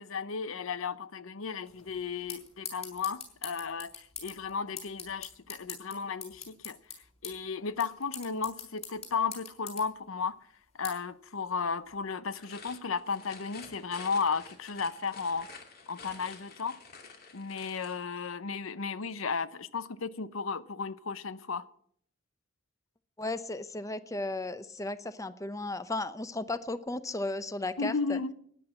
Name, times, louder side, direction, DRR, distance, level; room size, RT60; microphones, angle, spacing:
voice 1, 0.0-6.8 7.2-10.4 10.7-15.5 15.9-16.8 17.3-21.7 27.8-28.3, left 5 dB, 85° left, 0.8 m, -34 dB
sound 1, 1.7-12.1, left 5 dB, 30° left, 4.6 m, -46 dB
sound 2, 12.3-18.0, left 4 dB, 50° left, 2.5 m, -49 dB
voice 2, 23.2-28.2, left 2 dB, 15° left, 0.8 m, -35 dB
13.0 x 10.0 x 7.7 m
head